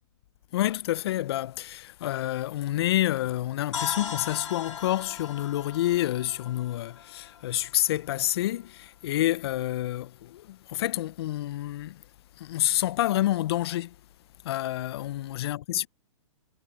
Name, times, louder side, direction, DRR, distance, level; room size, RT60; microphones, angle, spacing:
voice 1, 0.5-12.0 12.4-13.9 14.4-15.9, left 14 dB, 50° left, 0.9 m, -28 dB
sound 1, 3.7-7.7, left 7 dB, 75° left, 5.0 m, -38 dB
hypercardioid pair, 120°, 16 cm